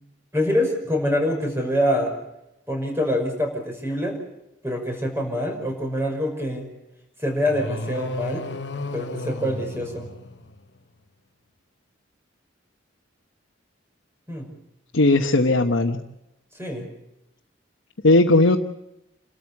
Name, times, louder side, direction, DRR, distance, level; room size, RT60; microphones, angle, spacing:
voice 1, 0.3-2.1 2.7-4.2 4.6-6.7 7.2-8.5 8.9-10.1 14.3-14.5 16.5-16.9, left 1 dB, 15° right, 2 dB, 5.8 m, -25 dB
sound 1, 7.4-10.8, left 2 dB, 60° left, 1.0 m, -34 dB
voice 2, 14.9-16.0 18.0-18.6, left 2 dB, 90° left, 2 dB, 1.2 m, -17 dB
28.5 x 13.5 x 8.3 m, 0.88 s
head